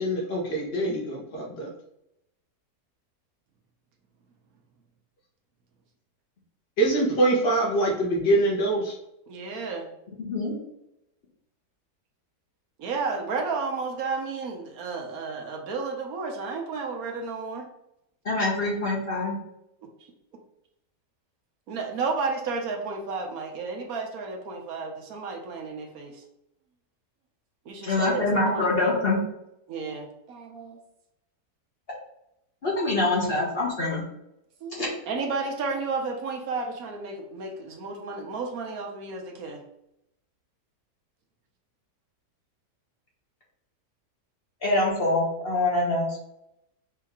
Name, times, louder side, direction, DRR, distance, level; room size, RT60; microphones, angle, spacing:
voice 1, 0.0-1.7 6.8-9.0, right 2 dB, 80° left, -2 dB, 1.8 m, -24 dB
voice 2, 9.3-9.9 12.8-17.7 19.8-20.1 21.7-26.2 27.6-28.9 29.7-30.8 34.6-39.6, right 4 dB, 60° right, 2 dB, 1.2 m, -32 dB
voice 3, 18.2-19.4 27.8-29.2 32.6-34.0 34.8-34.9 44.6-46.1, left 2 dB, 40° left, -3 dB, 1.1 m, -24 dB
4.5 x 2.9 x 3.6 m, 0.81 s
omnidirectional pair, 1.8 m